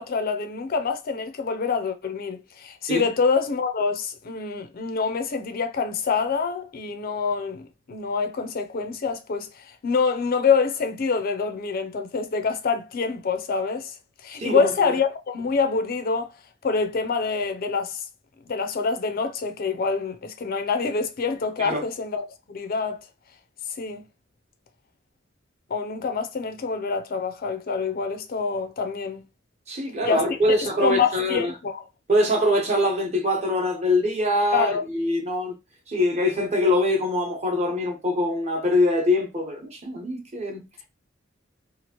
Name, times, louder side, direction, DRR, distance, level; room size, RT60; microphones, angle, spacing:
voice 1, 0.0-13.9 14.2-16.3 16.6-18.0 18.5-23.0 23.8-24.0 25.7-29.2 30.0-30.2 30.6-31.8 34.5-34.8, left 5 dB, 50° left, 0.5 m, -26 dB
voice 2, 14.4-14.7 21.6-21.8 29.7-31.5 32.1-35.5 35.9-40.6, left 1 dB, 35° right, 0.9 m, -23 dB
2.9 x 2.5 x 2.8 m
head